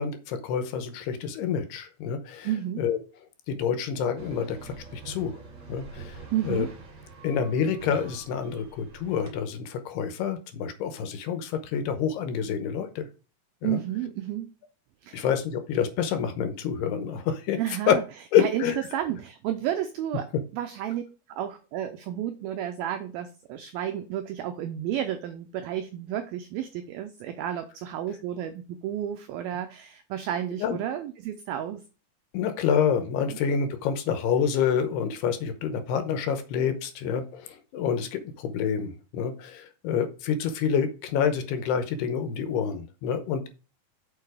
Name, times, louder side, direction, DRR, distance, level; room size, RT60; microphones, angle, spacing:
voice 1, 0.0-2.5 2.8-3.0 3.5-5.4 5.7-6.2 6.4-6.7 7.2-13.1 13.6-13.8 15.1-17.6 17.9-18.0 18.3-18.8 30.6-30.8 32.3-43.5, left 7 dB, 75° left, 8 dB, 2.7 m, -27 dB
voice 2, 2.4-2.8 6.3-6.7 13.6-14.5 15.0-15.3 17.6-18.0 18.4-18.6 18.9-21.0 21.3-31.8 33.3-33.4, right 11 dB, 90° right, 8 dB, 2.1 m, -31 dB
sound 1, 4.2-9.3, right 4 dB, 45° right, 1.4 m, -44 dB
6.8 x 5.7 x 4.8 m, 0.34 s
omnidirectional pair, 5.1 m